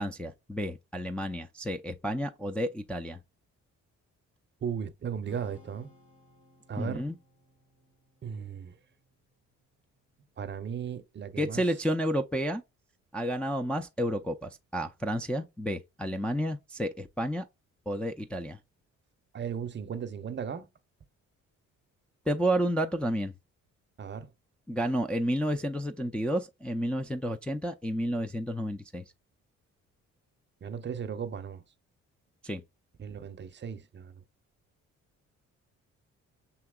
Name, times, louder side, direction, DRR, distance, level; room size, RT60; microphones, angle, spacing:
voice 1, 0.0-3.2 6.8-7.2 11.4-12.6 13.1-17.4 17.9-18.6 22.3-23.3 24.7-29.0 32.4-32.6, equal, 5° left, 0.4 m, -31 dB
voice 2, 4.6-5.9 6.7-7.0 8.2-8.7 10.4-11.6 19.3-20.7 24.0-24.3 30.6-31.6 33.0-34.2, right 7 dB, 35° right, 0.6 m, -36 dB
Strum, 5.2-11.5, left 3 dB, 75° left, 1.8 m, -62 dB
6.8 x 2.8 x 2.2 m
cardioid pair, 90°, 30 cm